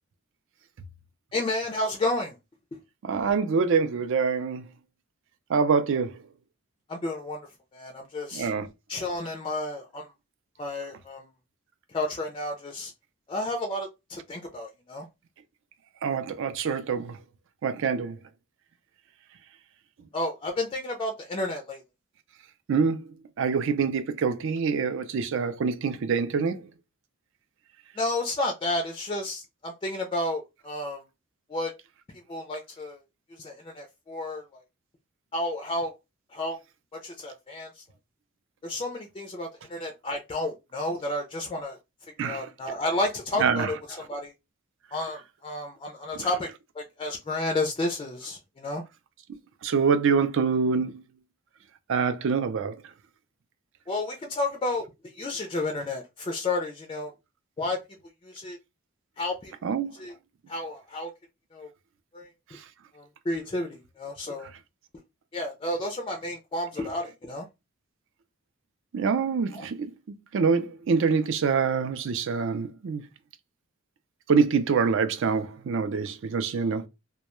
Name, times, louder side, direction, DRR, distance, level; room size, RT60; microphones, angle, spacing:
voice 1, 1.3-2.4 6.9-7.5 7.7-8.5 8.9-10.1 10.6-11.3 11.9-12.9 13.3-15.1 20.1-21.8 28.0-31.0 31.5-31.7 32.3-33.0 33.4-34.4 35.3-35.9 36.3-36.6 37.0-37.8 38.6-41.8 42.2-44.3 44.9-46.5 46.8-48.8 53.9-54.9 55.1-57.1 57.6-57.8 58.2-58.6 59.2-59.5 59.9-60.1 60.5-61.1 61.5-61.7 62.1-62.3 62.9-64.5 65.3-67.5 69.5-69.6, left 2 dB, 25° left, 0.3 m, -31 dB
voice 2, 3.0-4.7 5.5-6.2 8.3-8.7 16.0-17.2 17.6-18.2 22.7-26.7 42.2-42.5 43.4-43.7 49.6-51.0 51.9-52.8 59.6-59.9 62.5-62.6 68.9-69.8 70.3-73.0 74.3-76.9, right 5 dB, 65° right, 0.4 m, -25 dB
2.2 x 2.1 x 2.9 m
head